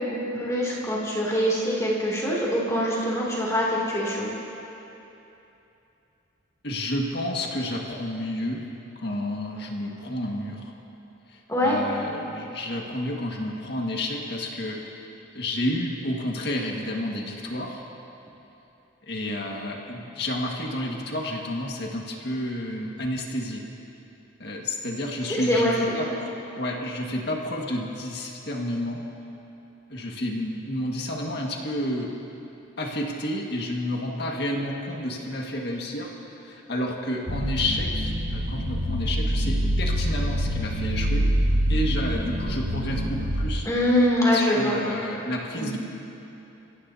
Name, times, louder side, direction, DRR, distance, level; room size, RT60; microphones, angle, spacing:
voice 1, 0.1-4.3 11.5-11.8 25.3-26.1 43.6-44.9 45.6-45.7, equal, 15° left, -5 dB, 2.8 m, -24 dB
voice 2, 6.6-8.6 9.0-10.7 11.3-15.0 15.3-17.8 19.0-23.6 24.4-29.0 29.9-32.1 32.8-41.3 41.7-43.7 44.0-45.8, left 1 dB, 60° left, -1 dB, 1.8 m, -30 dB
sound 1, 37.3-43.5, equal, 80° right, 2.1 m, -25 dB
30.0 x 16.5 x 2.8 m, 2.9 s
head